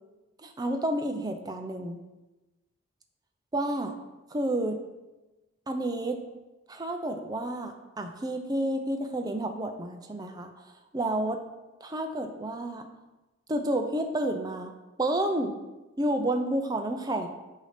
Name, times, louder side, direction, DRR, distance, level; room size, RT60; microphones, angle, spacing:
voice 1, 0.4-2.0 3.5-3.9 4.3-4.8 5.7-6.2 6.7-10.5 10.9-11.4 11.8-12.9 13.5-14.7 15.0-15.6 16.0-17.3, right 1 dB, 20° right, 5 dB, 0.5 m, -30 dB
8.1 x 2.8 x 5.0 m, 1.1 s
head